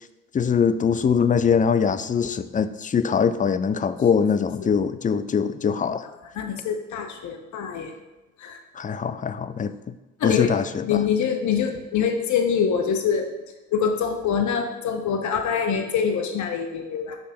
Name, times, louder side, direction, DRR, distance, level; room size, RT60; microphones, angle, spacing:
voice 1, 0.3-6.1 8.8-9.9 10.2-11.0, left 6 dB, 25° left, 0.4 m, -22 dB
voice 2, 6.3-7.9 8.4-8.6 10.2-10.5 10.8-13.3 13.7-17.2, left 7 dB, 65° left, 0.7 m, -24 dB
5.7 x 3.4 x 5.1 m
supercardioid pair, 50°, 31 cm